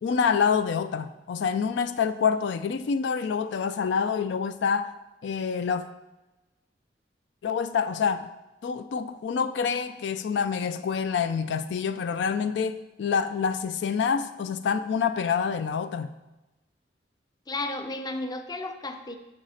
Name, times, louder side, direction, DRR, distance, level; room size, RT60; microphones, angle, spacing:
voice 1, 0.0-4.9 5.2-5.9 7.4-8.3 8.6-16.1, left 6 dB, 75° left, 0.4 m, -27 dB
voice 2, 17.5-19.2, left 2 dB, 25° left, 0.5 m, -33 dB
6.5 x 4.2 x 6.3 m
head